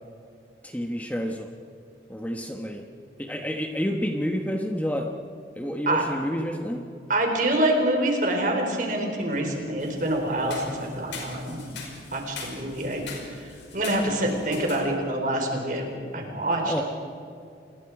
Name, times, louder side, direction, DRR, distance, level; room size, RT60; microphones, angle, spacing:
voice 1, 0.6-1.5 2.1-2.8 3.2-5.1 5.6-6.8 9.3-9.4 16.7-16.8, equal, 10° left, 3 dB, 1.2 m, -29 dB
voice 2, 7.1-11.7 12.1-16.8, right 1 dB, 45° right, 2 dB, 4.3 m, -26 dB
sound 1, 9.8-14.8, left 4 dB, 90° left, 5.4 m, -42 dB
28.5 x 21.0 x 4.9 m, 2.5 s
head